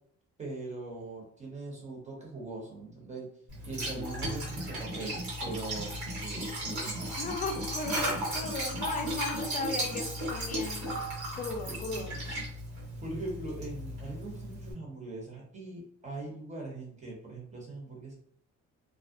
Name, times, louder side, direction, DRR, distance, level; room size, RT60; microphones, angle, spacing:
voice 1, 0.4-3.3 3.6-7.1 11.7-12.2 13.0-18.2, right 2 dB, 25° right, -2 dB, 1.0 m, -41 dB
Liquid, 3.5-14.7, right 1 dB, 75° right, 1.3 m, -35 dB
voice 2, 7.2-11.0 11.3-12.1, left 3 dB, 25° left, 4 dB, 0.4 m, -36 dB
2.3 x 2.1 x 2.5 m, 0.64 s
cardioid pair, 90°, 30 cm